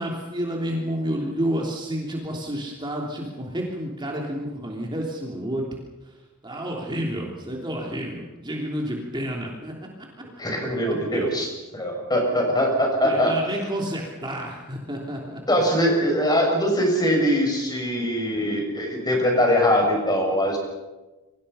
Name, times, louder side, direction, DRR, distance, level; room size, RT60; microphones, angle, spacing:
voice 1, 0.0-5.6 6.0-6.2 6.4-9.9 10.2-10.3 11.1-11.3 13.0-15.4, equal, 20° right, -1 dB, 3.3 m, -30 dB
voice 2, 10.4-11.5 11.7-13.4 15.5-20.6, equal, 20° left, 2 dB, 7.1 m, -22 dB
29.0 x 24.5 x 5.7 m, 1.1 s
head